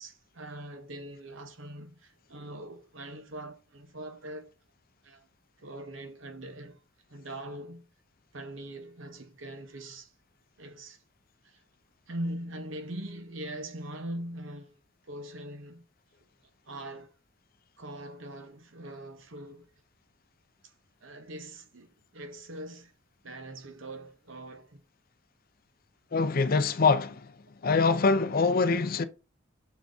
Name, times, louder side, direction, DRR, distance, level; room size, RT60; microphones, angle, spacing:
voice 1, 0.0-4.5 5.0-5.3 5.6-6.8 7.1-7.9 8.3-10.1 10.6-11.0 11.4-11.6 12.1-15.9 16.7-17.1 17.8-19.7 20.6-20.7 21.0-22.9 23.2-24.8, right 1 dB, 65° right, 1.0 m, -42 dB
voice 2, 26.1-27.3 27.6-29.0, left 4 dB, 45° left, 0.5 m, -24 dB
7.1 x 3.9 x 3.5 m
head